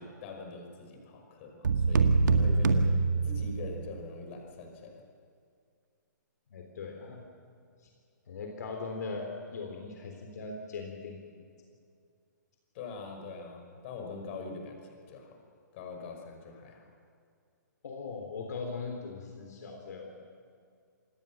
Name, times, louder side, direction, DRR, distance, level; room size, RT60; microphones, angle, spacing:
voice 1, 0.0-2.9 3.2-5.0 12.7-15.4 15.7-16.8, left 3 dB, 40° left, 3 dB, 5.5 m, -43 dB
sound 1, 1.6-3.9, right 4 dB, 75° right, 1.9 m, -25 dB
voice 2, 6.5-7.3 7.8-7.9 8.3-11.5 17.8-20.1, left 4 dB, 65° left, 3 dB, 3.7 m, -40 dB
26.5 x 20.5 x 7.4 m, 2.3 s
hypercardioid pair, 145°, 10 cm